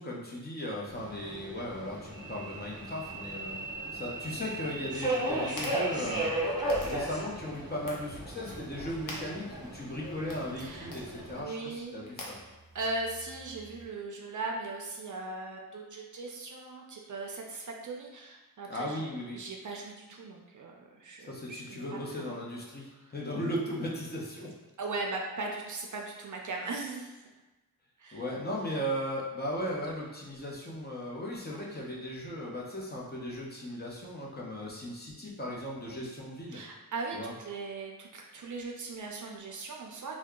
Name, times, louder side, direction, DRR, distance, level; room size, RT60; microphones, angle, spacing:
voice 1, 0.0-3.6 3.9-6.3 6.8-12.4 18.7-19.4 21.3-24.5 28.1-36.6 37.1-37.3, equal, 25° left, -4 dB, 0.7 m, -37 dB
Subway metro underground, 0.9-11.4, right 1 dB, 10° right, 0.7 m, -36 dB
sound 1, 4.8-13.8, left 1 dB, 60° left, 0.7 m, -49 dB
voice 2, 10.6-10.9 11.4-12.0 12.7-19.1 19.3-22.3 23.0-23.1 24.8-27.1 28.0-28.2 36.5-40.1, right 3 dB, 55° right, 0 dB, 0.5 m, -39 dB
2.7 x 2.2 x 3.6 m, 1.2 s
wide cardioid pair, 75°, 37 cm